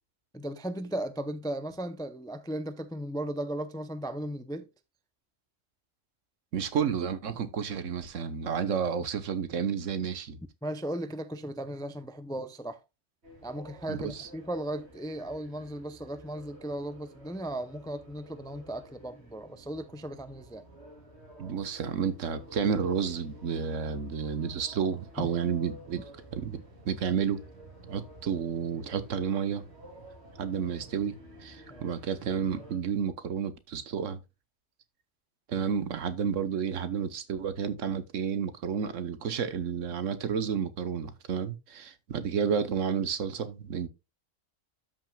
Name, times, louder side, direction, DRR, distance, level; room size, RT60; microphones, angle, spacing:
voice 1, 0.3-4.7 10.6-12.8 13.4-20.6 25.2-25.3 31.7-31.8, right 1 dB, 5° left, 0.3 m, -36 dB
voice 2, 6.5-10.4 13.9-14.3 21.4-26.0 26.3-27.4 27.9-29.6 30.4-31.1 31.4-34.2 35.5-43.9, right 7 dB, 80° right, 1.3 m, -31 dB
sound 1, 13.2-32.8, right 1 dB, 60° right, 3.2 m, -51 dB
12.5 x 6.0 x 2.3 m
omnidirectional pair, 1.3 m